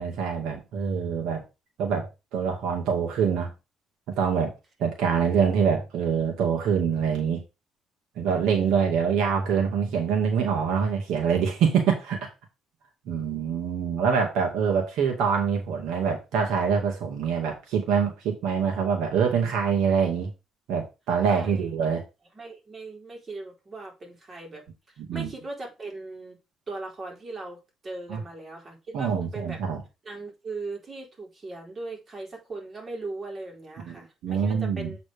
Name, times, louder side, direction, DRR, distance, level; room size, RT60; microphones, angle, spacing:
voice 1, 0.0-1.4 1.8-3.5 4.2-4.5 4.8-7.4 8.2-12.2 13.1-20.3 20.7-22.0 25.1-25.3 28.1-28.2 28.9-29.8 33.9-34.9, right 6 dB, 80° right, 2.1 m, -25 dB
voice 2, 21.2-21.8 22.3-24.6 25.1-26.4 26.7-29.6 30.0-35.0, right 3 dB, 35° right, 3.8 m, -39 dB
8.1 x 4.2 x 5.1 m
cardioid pair, 95°, 0 cm